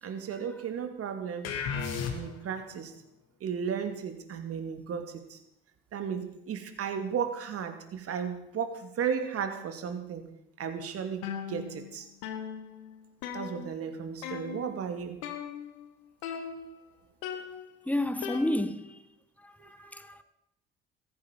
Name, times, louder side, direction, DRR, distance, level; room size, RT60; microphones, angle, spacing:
voice 1, 0.0-1.5 2.1-2.9 3.4-5.4 5.9-10.3 10.6-12.1 13.3-15.2 19.6-19.9, right 7 dB, 50° right, 2.7 m, -35 dB
sound 1, 1.4-2.6, left 6 dB, 60° left, 2.6 m, -33 dB
sound 2, 11.2-11.9 12.2-13.9 14.2-14.8 15.2-15.9 16.2-16.9 17.2-18.9, left 8 dB, 75° left, 1.8 m, -39 dB
voice 2, 17.8-19.0 19.4-20.2, left 1 dB, 5° left, 1.5 m, -31 dB
16.0 x 14.5 x 5.4 m
hypercardioid pair, 55°, 29 cm